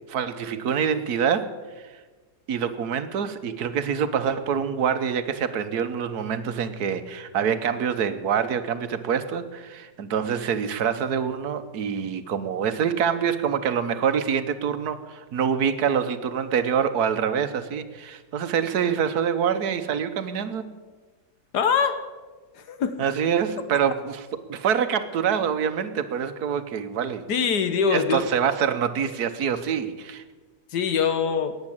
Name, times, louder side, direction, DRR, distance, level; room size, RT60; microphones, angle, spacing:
voice 1, 0.1-1.5 1.8-1.9 2.5-20.7 23.0-27.3 27.9-30.2, right 7 dB, 70° right, 10 dB, 1.4 m, -26 dB
voice 2, 21.5-22.0 22.5-23.0 27.3-28.2 30.7-31.5, left 6 dB, 80° left, 10 dB, 1.7 m, -23 dB
14.5 x 9.6 x 8.8 m, 1.3 s
omnidirectional pair, 1.8 m